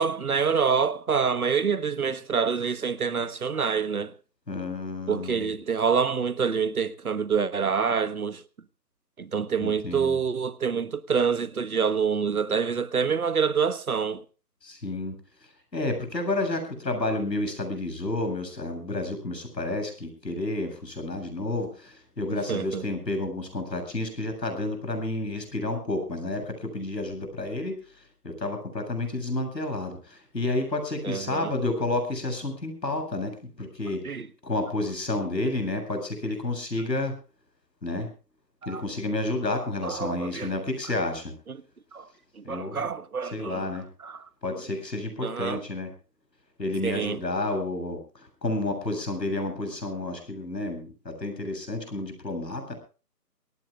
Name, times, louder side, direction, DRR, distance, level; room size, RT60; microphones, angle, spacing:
voice 1, 0.0-4.1 5.1-8.4 9.2-14.2 22.5-22.8 31.0-31.5 34.0-34.3 38.6-38.8 39.8-40.5 41.5-41.6 41.9-42.1 42.4-43.6 44.0-44.2 45.2-45.6 46.8-47.2, right 6 dB, 60° right, 1.4 m, -26 dB
voice 2, 4.5-5.5 9.6-10.2 14.6-15.1 15.7-27.8 28.2-34.0 34.4-37.1 37.8-38.1 38.7-41.3 42.4-42.8 43.2-43.9 44.4-45.9 46.6-52.7, left 2 dB, 80° left, 7.8 m, -30 dB
24.5 x 18.0 x 2.4 m
figure-of-eight pair, 160°, 49 cm